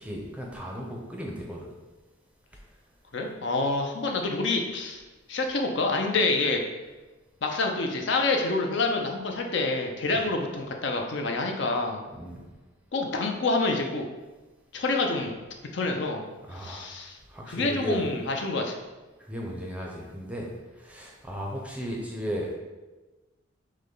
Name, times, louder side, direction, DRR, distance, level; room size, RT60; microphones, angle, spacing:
voice 1, 0.0-1.7 10.1-10.2 12.1-12.5 16.4-16.8 17.3-18.1 19.2-20.5 20.8-22.5, equal, 5° right, -1 dB, 0.6 m, -35 dB
voice 2, 3.1-5.0 5.3-6.6 7.4-12.0 12.9-14.1 14.7-15.3 15.7-16.2 16.6-17.2 17.5-18.8, left 3 dB, 60° left, 2 dB, 0.5 m, -27 dB
6.4 x 2.2 x 3.8 m, 1.2 s
head